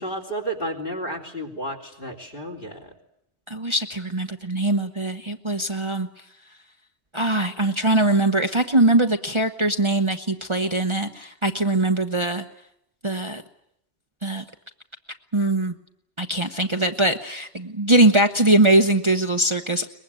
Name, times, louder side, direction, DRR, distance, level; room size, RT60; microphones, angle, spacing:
voice 1, 0.0-2.9, right 1 dB, 50° left, 6 dB, 3.6 m, -32 dB
voice 2, 3.5-6.1 7.1-12.4 13.0-13.4 14.2-14.4 15.3-15.7 16.2-19.9, right 2 dB, 25° right, 6 dB, 1.0 m, -21 dB
23.0 x 21.0 x 9.1 m, 0.76 s
omnidirectional pair, 1.2 m